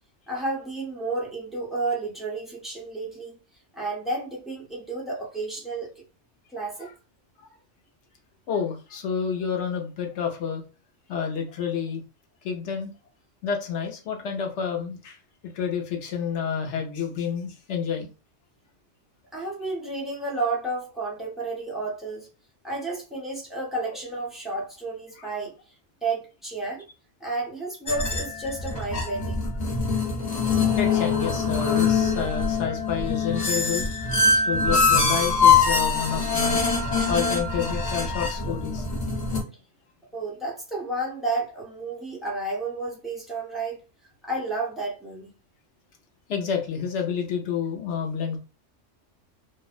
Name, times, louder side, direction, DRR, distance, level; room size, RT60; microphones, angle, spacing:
voice 1, 0.3-3.4 3.7-6.0 6.5-6.9 19.3-22.3 22.6-25.5 26.0-26.9 27.2-29.4 40.1-43.8 44.2-45.3, right 2 dB, ahead, 0.5 m, -31 dB
voice 2, 8.5-10.6 11.1-12.0 12.4-12.9 13.4-15.2 15.5-18.1 30.8-39.0 46.3-48.4, left 7 dB, 70° left, 0.9 m, -29 dB
sound 1, 27.9-39.4, left 4 dB, 40° left, 0.8 m, -23 dB
2.6 x 2.0 x 2.4 m
omnidirectional pair, 1.3 m